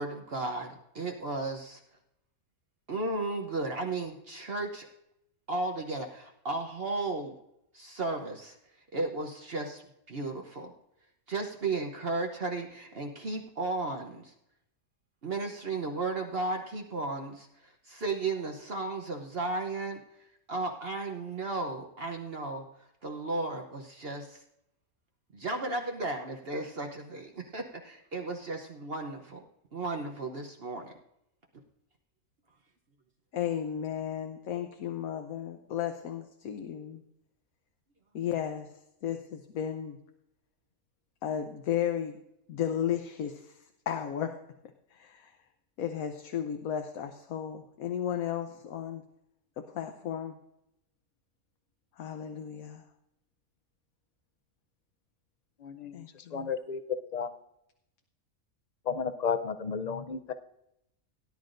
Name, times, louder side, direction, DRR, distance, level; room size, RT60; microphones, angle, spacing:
voice 1, 0.0-1.8 2.9-4.9 5.5-7.3 7.7-8.5 8.9-9.8 10.1-10.7 11.3-14.3 15.2-17.5 17.8-20.0 20.5-22.6 23.0-24.4 25.3-29.4 29.7-30.9, right 3 dB, 50° right, 2 dB, 1.0 m, -34 dB
voice 2, 33.3-37.0 38.1-38.7 39.0-40.0 41.2-42.2 42.5-43.6 43.9-44.4 44.9-45.3 45.8-49.0 49.6-50.3 52.0-52.8 55.9-56.5, left 9 dB, 80° left, 6 dB, 1.2 m, -34 dB
voice 3, 55.6-56.0 56.3-56.8 57.1-57.3 58.9-60.3, left 6 dB, 55° left, 10 dB, 0.4 m, -33 dB
17.5 x 10.5 x 2.6 m, 0.82 s
omnidirectional pair, 1.5 m